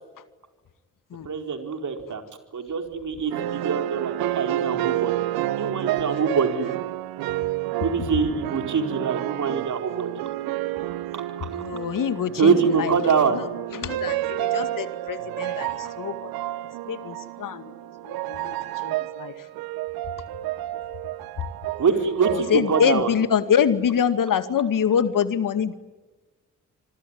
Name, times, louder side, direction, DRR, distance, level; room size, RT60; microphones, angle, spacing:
voice 1, 1.2-2.2 2.5-5.2 5.6-6.7 7.8-10.1 11.1-11.5 12.4-13.4 21.8-23.1, right 6 dB, 55° right, 5 dB, 4.6 m, -24 dB
sound 1, 3.3-23.0, right 14 dB, 85° right, 1.1 m, -30 dB
voice 2, 11.6-13.4 13.7-16.3 16.9-17.7 18.0-18.6 18.8-19.3 22.3-25.7, left 7 dB, 65° left, 11 dB, 2.2 m, -25 dB
26.5 x 21.0 x 9.7 m, 1.2 s
hypercardioid pair, 45°, 35 cm